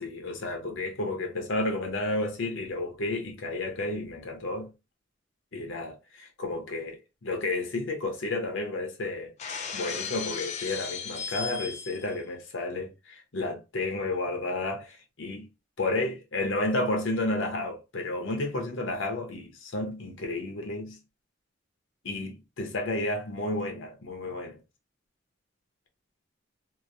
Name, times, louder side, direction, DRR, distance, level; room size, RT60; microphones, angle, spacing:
voice 1, 0.0-4.7 5.5-9.3 9.7-15.5 15.8-21.0 22.0-24.6, left 2 dB, 85° left, 0.8 m, -31 dB
Shatter, 9.4-12.2, left 6 dB, 35° left, 0.4 m, -36 dB
2.9 x 2.0 x 2.5 m
head